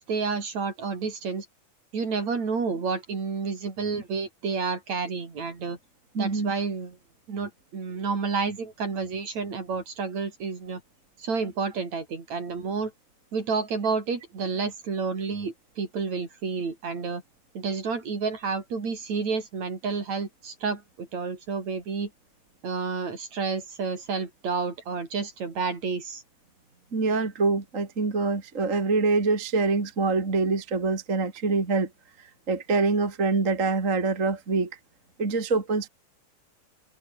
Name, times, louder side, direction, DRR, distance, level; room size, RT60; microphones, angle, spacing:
voice 1, 0.0-1.5 1.9-5.8 6.2-7.0 7.3-10.8 11.2-12.9 13.3-17.2 17.6-22.1 22.6-26.2, right 5 dB, 50° right, 5.3 m, -30 dB
voice 2, 6.1-6.5 26.9-31.9 32.5-34.7 35.2-35.9, right 3 dB, 25° right, 2.6 m, -25 dB
omnidirectional pair, 4.1 m